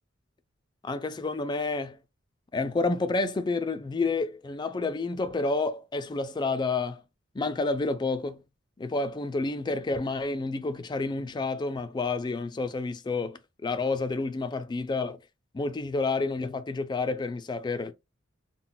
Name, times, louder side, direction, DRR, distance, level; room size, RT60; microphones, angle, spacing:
voice 1, 0.8-2.0 2.5-7.0 7.3-8.5 8.8-15.2 15.5-17.9, left 3 dB, 20° left, 0.3 m, -29 dB
2.2 x 2.1 x 3.7 m
head